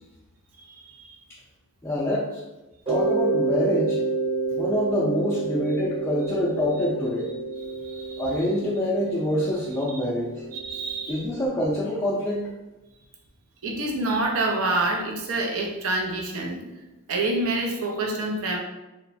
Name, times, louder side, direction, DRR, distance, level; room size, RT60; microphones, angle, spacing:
voice 1, 0.7-1.2 7.7-8.2 10.5-11.2 13.6-16.6 17.1-18.6, right 2 dB, 70° right, 1 dB, 0.5 m, -27 dB
voice 2, 1.8-2.4 2.9-4.0 4.5-7.3 8.2-10.4 11.1-12.5, left 1 dB, 10° left, -7 dB, 0.3 m, -26 dB
Mallet percussion, 2.9-11.5, right 3 dB, 25° right, 0.7 m, -29 dB
2.9 x 2.1 x 2.6 m, 1.0 s
head